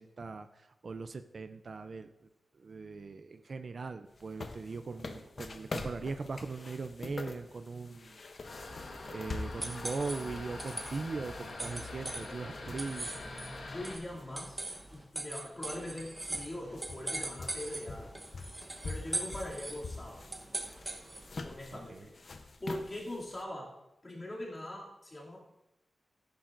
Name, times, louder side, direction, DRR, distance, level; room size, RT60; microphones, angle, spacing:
voice 1, 0.0-2.1 2.5-8.7 9.1-13.1 21.7-22.1, right 4 dB, 45° right, 9 dB, 0.4 m, -40 dB
sound 1, 4.2-14.2 14.7-14.8 15.7-15.8 16.0-23.4, left 3 dB, 45° left, 0.7 m, -45 dB
sound 2, 8.4-14.0, left 2 dB, 60° left, 1.5 m, -44 dB
sound 3, 8.6-21.4, right 2 dB, 20° right, 0.9 m, -42 dB
voice 2, 13.6-14.6 14.9-18.1 18.8-20.2 21.4-22.1 22.6-23.7 24.0-25.4, left 1 dB, 25° left, -4 dB, 2.6 m, -42 dB
14.5 x 10.5 x 2.6 m, 0.93 s
wide cardioid pair, 160°, 0 cm